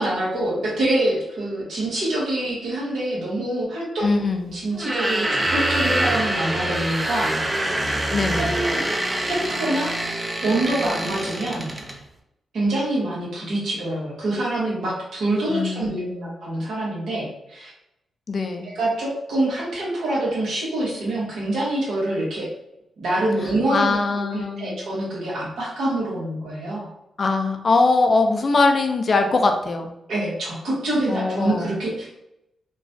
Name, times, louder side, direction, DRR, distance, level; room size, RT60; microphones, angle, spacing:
voice 1, 0.0-4.1 4.5-7.3 8.4-8.8 9.2-10.0 10.4-11.7 12.5-17.7 18.6-22.5 23.0-24.0 24.3-26.9 30.1-32.1, right 1 dB, 75° right, -5 dB, 1.3 m, -25 dB
voice 2, 4.0-4.5 8.1-8.5 15.5-16.3 18.3-18.8 23.7-24.8 27.2-29.9 31.1-31.7, left 3 dB, 50° left, 4 dB, 0.5 m, -22 dB
sound 1, 4.7-12.0, right 1 dB, 25° right, 0.5 m, -25 dB
3.0 x 2.3 x 2.6 m, 0.85 s
supercardioid pair, 50°, 0 cm